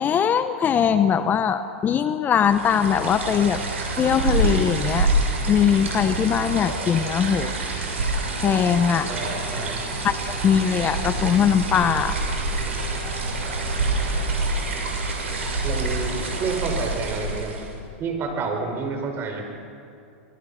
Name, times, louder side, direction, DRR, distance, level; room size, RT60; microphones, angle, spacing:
voice 1, 0.0-3.6 4.0-5.1 5.5-7.5 8.4-9.1 10.0-10.2 10.4-12.2, left 8 dB, 25° left, 11 dB, 0.9 m, -21 dB
sound 1, 2.4-17.8, right 2 dB, 85° right, 6.7 m, -27 dB
voice 2, 9.1-9.7 15.6-16.1 16.4-17.6 18.0-19.5, right 4 dB, 35° right, 3 dB, 5.5 m, -29 dB
26.0 x 23.0 x 5.8 m, 2.6 s
hypercardioid pair, 110°, 7 cm